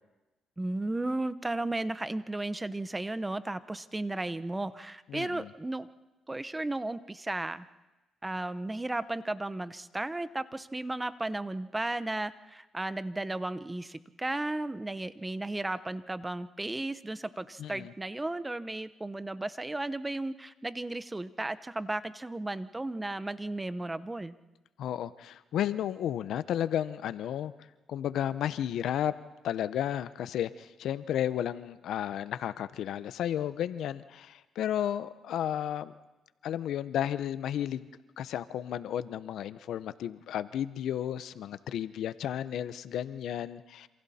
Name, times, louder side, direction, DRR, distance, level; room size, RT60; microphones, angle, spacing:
voice 1, 0.6-5.9 6.3-7.7 8.2-24.4, right 2 dB, 15° right, 14 dB, 0.8 m, -34 dB
voice 2, 5.1-5.5 17.6-17.9 24.8-27.5 27.9-29.1 29.4-35.9 36.4-37.9 38.2-43.9, left 10 dB, 75° left, 14 dB, 0.8 m, -33 dB
28.0 x 27.0 x 4.3 m, 1.1 s
cardioid pair, 90°, 0 cm